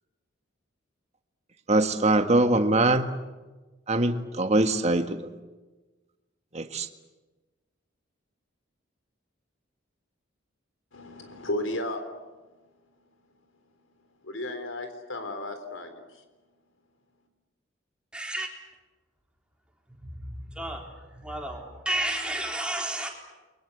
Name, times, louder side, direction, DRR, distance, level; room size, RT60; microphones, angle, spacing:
voice 1, 1.7-3.1 3.9-5.2 6.5-6.9, right 2 dB, 35° right, 1.7 m, -23 dB
voice 2, 10.9-12.0 14.2-16.1, left 1 dB, 80° left, 3.8 m, -34 dB
voice 3, 18.1-18.5 20.0-23.1, right 1 dB, 5° right, 4.1 m, -32 dB
30.0 x 23.5 x 8.3 m
head